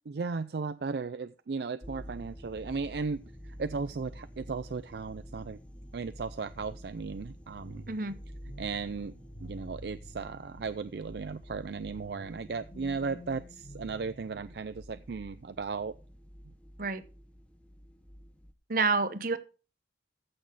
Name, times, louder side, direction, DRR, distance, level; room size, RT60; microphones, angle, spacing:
voice 1, 0.1-5.6 5.9-7.9 8.6-9.1 9.4-16.0, right 4 dB, 65° right, 13 dB, 0.4 m, -36 dB
sound 1, 1.8-18.5, equal, 5° left, 0.8 m, -49 dB
sound 2, 7.6-10.7 11.9-14.8, right 1 dB, 85° left, 2.7 m, -50 dB
voice 2, 18.7-19.4, right 4 dB, 50° right, 12 dB, 0.9 m, -28 dB
14.5 x 6.3 x 3.9 m, 0.34 s
head